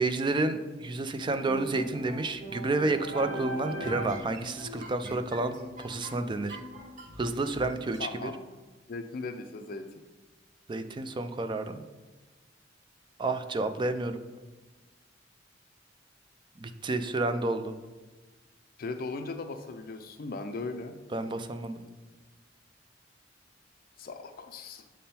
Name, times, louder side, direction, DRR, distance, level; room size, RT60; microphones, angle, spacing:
voice 1, 0.0-6.6 7.2-8.3 10.7-11.8 13.2-14.2 16.6-17.8 21.1-21.8, right 2 dB, 25° right, 9 dB, 0.4 m, -30 dB
sound 1, 1.2-8.0, right 1 dB, 45° right, 1.1 m, -40 dB
voice 2, 8.0-8.4 8.9-9.9 18.8-21.0 24.0-24.8, left 3 dB, 50° left, 7 dB, 0.4 m, -38 dB
7.5 x 3.6 x 4.3 m, 1.2 s
head